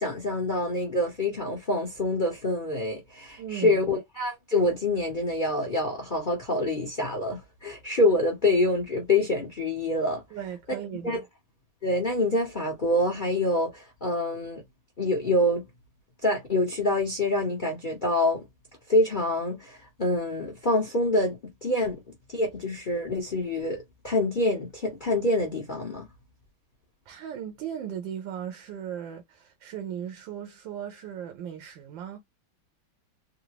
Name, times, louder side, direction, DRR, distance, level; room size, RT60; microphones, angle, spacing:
voice 1, 0.0-10.2 11.0-11.2 11.8-14.6 15.0-15.6 16.2-18.4 18.9-22.0 22.3-26.1, left 1 dB, 40° left, 0.8 m, -26 dB
voice 2, 3.4-3.8 10.3-11.2 27.1-32.2, right 9 dB, 80° right, 1.5 m, -37 dB
3.9 x 2.1 x 2.8 m
omnidirectional pair, 2.0 m